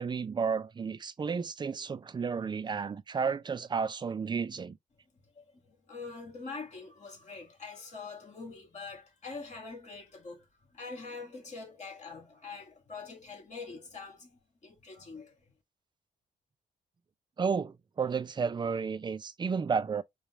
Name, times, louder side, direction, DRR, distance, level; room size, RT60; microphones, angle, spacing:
voice 1, 0.0-4.8 17.4-20.0, right 5 dB, 30° right, 0.4 m, -32 dB
voice 2, 5.2-15.5, left 4 dB, 50° left, 2.1 m, -44 dB
4.9 x 2.3 x 2.9 m
cardioid pair, 85°, 16 cm